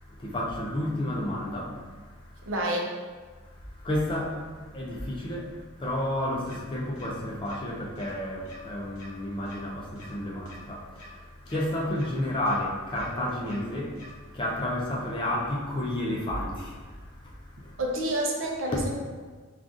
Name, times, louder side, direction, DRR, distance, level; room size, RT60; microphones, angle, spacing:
voice 1, 0.0-2.5 3.4-17.8, left 1 dB, 20° left, -3 dB, 0.4 m, -32 dB
voice 2, 2.5-2.9 17.8-18.9, right 1 dB, 60° right, -1 dB, 0.5 m, -28 dB
sound 1, 6.5-6.6 7.0-7.1 7.5-7.6 8.0-8.1 8.4-8.6 9.0-9.1 9.5-9.6 10.0-10.1 10.5-10.6 11.0-11.1 11.5-11.6 12.0-12.1 12.5-12.6 13.0-13.1 13.5-13.6 14.0-14.1, left 1 dB, 70° left, 0.6 m, -48 dB
3.8 x 2.4 x 2.4 m, 1.5 s
head